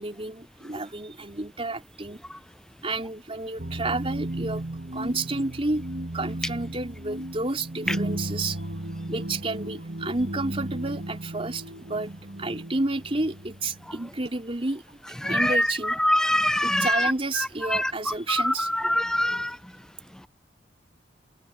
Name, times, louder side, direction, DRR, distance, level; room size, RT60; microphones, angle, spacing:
voice 1, 0.0-2.2 2.8-4.6 4.9-5.8 6.1-8.6 9.1-12.1 12.4-16.2 16.6-18.7 19.1-19.4, right 2 dB, 30° right, 3.8 m, -31 dB
sound 1, 3.6-14.3, right 1 dB, 60° right, 2.1 m, -35 dB
voice 2, 15.2-15.6 16.0-17.1 17.7-17.9 18.4-18.5 18.8-19.5, left 1 dB, 5° left, 0.3 m, -23 dB
head